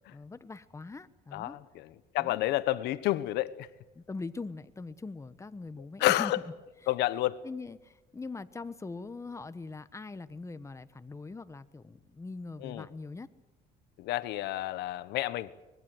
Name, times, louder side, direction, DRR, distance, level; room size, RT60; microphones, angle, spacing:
voice 1, 0.0-1.6 2.2-2.4 3.9-6.3 7.4-13.3, left 3 dB, 15° left, 13 dB, 1.2 m, -42 dB
voice 2, 1.3-1.9 2.1-3.7 6.0-6.4 6.9-7.4 12.6-12.9 14.0-15.5, left 16 dB, 85° left, 15 dB, 1.1 m, -29 dB
24.5 x 21.0 x 7.9 m, 1.0 s
cardioid pair, 110°, 17 cm